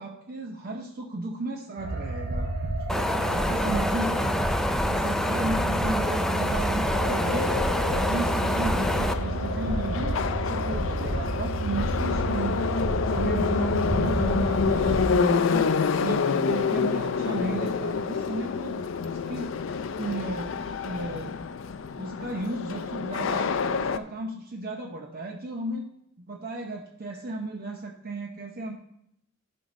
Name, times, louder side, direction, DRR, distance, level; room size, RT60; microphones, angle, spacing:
voice 1, 0.0-2.5 3.2-4.6 4.9-7.5 7.9-12.6 12.9-15.7 16.0-20.6 20.8-21.4 22.0-25.9 26.2-28.7, right 2 dB, 50° right, 2 dB, 0.7 m, -34 dB
sound 1, 1.8-15.0, right 2 dB, 80° right, 2.9 m, -30 dB
Wind, 2.9-9.1, left 1 dB, 5° left, 0.4 m, -27 dB
Subway metro underground, 6.9-24.0, left 5 dB, 75° left, 0.4 m, -28 dB
12.0 x 5.3 x 4.0 m, 0.74 s
head